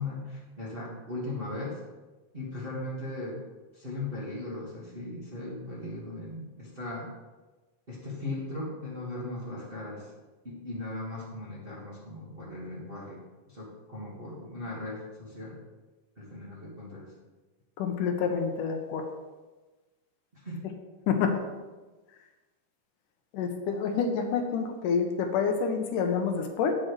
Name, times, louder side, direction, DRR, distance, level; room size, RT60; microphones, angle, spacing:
voice 1, 0.0-1.8 2.3-3.4 3.7-7.1 7.9-10.1 10.4-13.2 13.5-15.6 16.2-17.1 20.3-20.7, left 2 dB, 25° right, -7 dB, 1.5 m, -38 dB
voice 2, 17.8-19.1 21.1-21.4 23.3-26.7, left 6 dB, 80° left, 4 dB, 2.4 m, -28 dB
8.7 x 8.4 x 3.2 m, 1.2 s
omnidirectional pair, 3.7 m